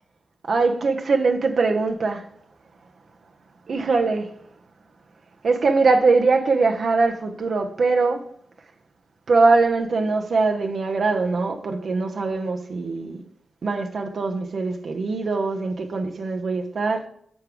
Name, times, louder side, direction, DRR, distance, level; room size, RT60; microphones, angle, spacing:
voice 1, 0.5-2.3 3.7-4.3 5.4-8.3 9.3-13.2 13.6-17.1, right 3 dB, 60° right, 0.7 m, -22 dB
5.2 x 4.6 x 4.8 m
cardioid pair, 70°, 0 cm